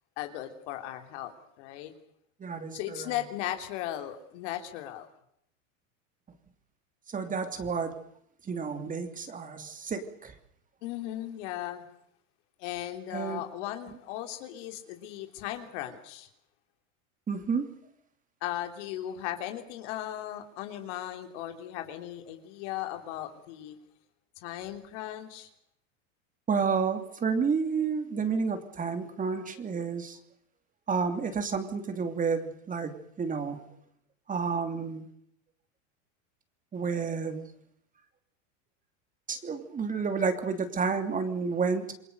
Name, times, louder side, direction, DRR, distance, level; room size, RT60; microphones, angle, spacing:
voice 1, 0.2-1.9 2.7-5.1 10.8-11.8 12.6-16.3 18.4-23.8 24.4-25.5, left 13 dB, 65° left, 6 dB, 3.5 m, -37 dB
voice 2, 2.4-3.2 7.1-8.0 8.5-10.3 13.1-13.4 17.3-17.8 26.5-30.2 30.9-33.7 34.3-35.1 36.7-37.5 39.3-41.9, right 5 dB, 20° right, 7 dB, 2.9 m, -30 dB
28.0 x 21.0 x 6.8 m, 0.71 s
supercardioid pair, 135°, 38 cm